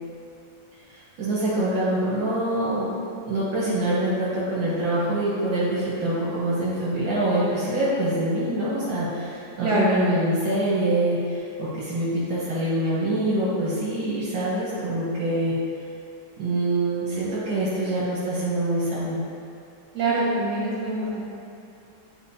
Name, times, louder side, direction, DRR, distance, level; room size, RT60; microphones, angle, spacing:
voice 1, 0.9-2.9 3.3-15.6 16.4-19.2, right 1 dB, 75° right, -9 dB, 1.8 m, -25 dB
voice 2, 9.6-9.9 19.9-21.2, right 2 dB, 55° right, -7 dB, 2.1 m, -24 dB
8.9 x 4.0 x 2.8 m, 2.6 s
omnidirectional pair, 2.2 m